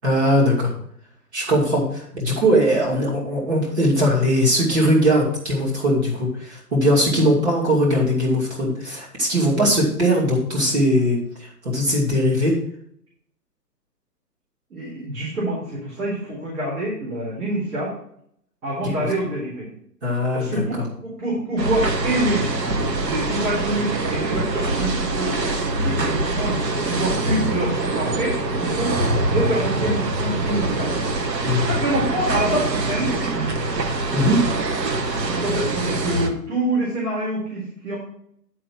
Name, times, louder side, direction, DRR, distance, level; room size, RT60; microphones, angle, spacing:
voice 1, 0.0-0.7 1.3-12.5 18.8-19.1 20.0-20.6 31.4-31.7 34.1-34.5, equal, 40° right, -3 dB, 2.7 m, -20 dB
voice 2, 14.7-17.9 18.6-19.7 20.3-20.7 21.0-22.5 23.0-25.4 25.8-29.0 29.2-30.9 31.7-33.3 35.3-38.0, right 1 dB, 60° right, -4 dB, 4.2 m, -26 dB
sound 1, 21.6-36.3, right 2 dB, 75° right, 1.5 m, -24 dB
11.0 x 4.9 x 6.0 m, 0.68 s
hypercardioid pair, 175°, 50 cm